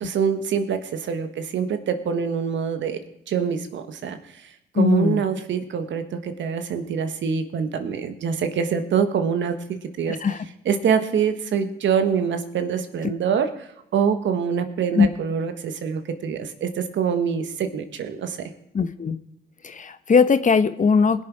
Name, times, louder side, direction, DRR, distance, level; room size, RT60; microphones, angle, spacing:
voice 1, 0.0-3.0 3.3-4.2 4.7-10.2 10.6-13.7 13.9-18.4, right 7 dB, 65° right, 8 dB, 1.6 m, -25 dB
voice 2, 4.7-5.2 10.1-10.5 15.0-15.1 18.7-19.2 19.6-21.2, left 5 dB, 40° left, 12 dB, 1.0 m, -19 dB
21.0 x 7.2 x 4.8 m, 0.85 s
hypercardioid pair, 50°, 21 cm